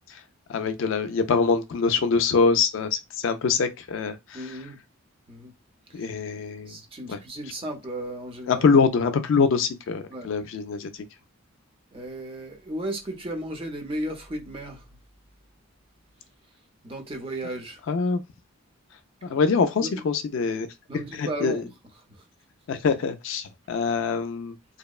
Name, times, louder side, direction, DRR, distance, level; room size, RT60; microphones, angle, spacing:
voice 1, 0.5-4.6 5.9-6.7 7.1-7.2 8.5-10.9 17.9-18.2 19.2-20.7 21.1-21.6 22.7-24.5, left 5 dB, 60° left, 0.3 m, -24 dB
voice 2, 4.3-4.8 5.3-5.5 6.7-8.6 10.1-10.3 11.9-14.8 16.8-17.8 19.8-19.9 20.9-21.6, right 1 dB, 25° right, 0.6 m, -34 dB
2.7 x 2.1 x 2.3 m
head